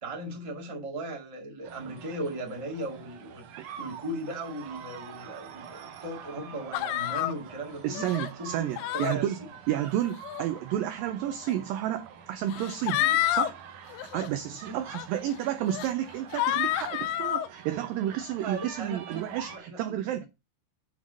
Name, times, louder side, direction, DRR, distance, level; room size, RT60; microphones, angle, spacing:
voice 1, 0.0-3.4 3.8-8.1 8.4-8.7 8.9-9.3 13.0-13.2 14.7-14.8 18.4-19.8 20.1-20.2, right 1 dB, 25° right, 0.6 m, -37 dB
sound 1, 1.6-19.6, right 7 dB, 70° right, 2.1 m, -46 dB
sound 2, 6.7-7.3 7.9-8.3 8.8-9.2 10.1-10.4 11.5-11.6 12.5-13.5 13.9-14.3 14.9-15.1 15.7-15.9 16.3-17.5, left 13 dB, 80° left, 2.4 m, -29 dB
voice 2, 7.8-9.4 9.7-13.0 13.3-13.6 14.0-20.2, right 12 dB, 85° right, 2.0 m, -31 dB
7.8 x 3.7 x 6.2 m
omnidirectional pair, 4.8 m